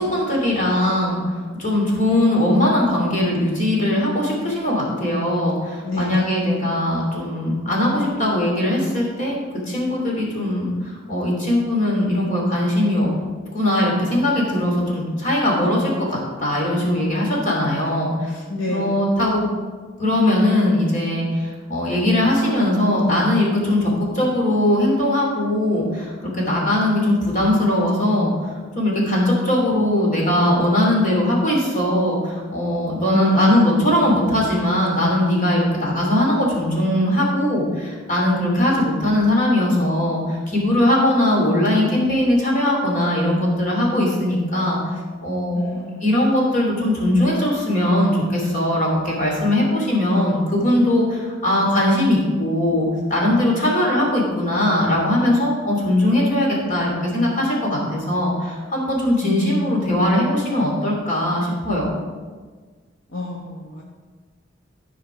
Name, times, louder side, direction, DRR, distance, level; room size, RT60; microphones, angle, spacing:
voice 1, 0.0-9.4 9.7-13.1 13.5-19.5 20.0-44.8 45.2-45.7 46.0-62.0, left 1 dB, 40° left, -2 dB, 2.9 m, -20 dB
voice 2, 5.8-6.2 18.5-19.0 33.1-33.7 45.5-46.1 53.6-53.8 59.2-60.0 63.1-63.8, left 2 dB, 75° left, -2 dB, 1.2 m, -27 dB
14.0 x 5.1 x 5.0 m, 1.5 s
head